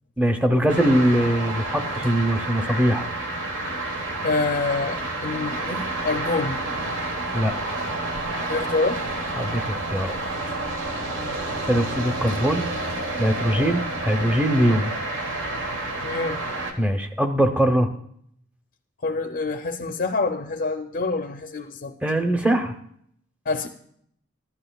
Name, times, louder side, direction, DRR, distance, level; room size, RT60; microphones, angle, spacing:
voice 1, 0.2-3.1 7.3-7.5 9.4-10.2 11.7-12.6 13.2-14.9 16.8-17.9 22.0-22.7, equal, 5° right, 6 dB, 0.6 m, -21 dB
sound 1, 0.7-16.7, right 2 dB, 75° right, 1.3 m, -29 dB
voice 2, 4.2-6.6 8.5-9.0 11.2-11.4 13.5-13.7 16.0-16.4 19.0-21.9 23.5-23.7, left 3 dB, 45° left, 5 dB, 0.5 m, -27 dB
14.5 x 11.0 x 2.3 m, 0.68 s
head